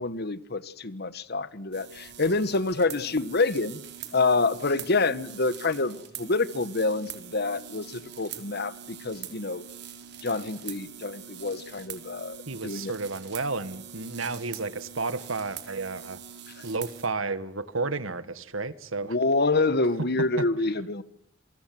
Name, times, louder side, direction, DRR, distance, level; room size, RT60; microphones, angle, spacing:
voice 1, 0.0-3.8 4.1-9.6 10.2-12.9 16.6-16.7 19.1-21.0, left 3 dB, 55° left, 1.4 m, -27 dB
sound 1, 1.7-17.1, right 9 dB, 60° right, 4.0 m, -43 dB
voice 2, 12.5-16.2 16.6-19.1 20.4-20.5, right 3 dB, 90° right, 1.8 m, -32 dB
27.0 x 24.0 x 7.8 m
head